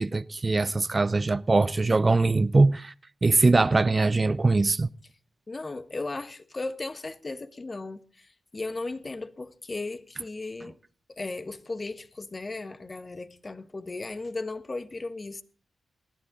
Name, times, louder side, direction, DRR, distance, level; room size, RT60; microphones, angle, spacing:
voice 1, 0.0-2.9 3.2-4.9, right 3 dB, 35° right, 0.6 m, -22 dB
voice 2, 5.5-10.7 11.2-15.4, left 3 dB, 35° left, 1.5 m, -36 dB
19.0 x 12.0 x 3.9 m
cardioid pair, 55°, 0 cm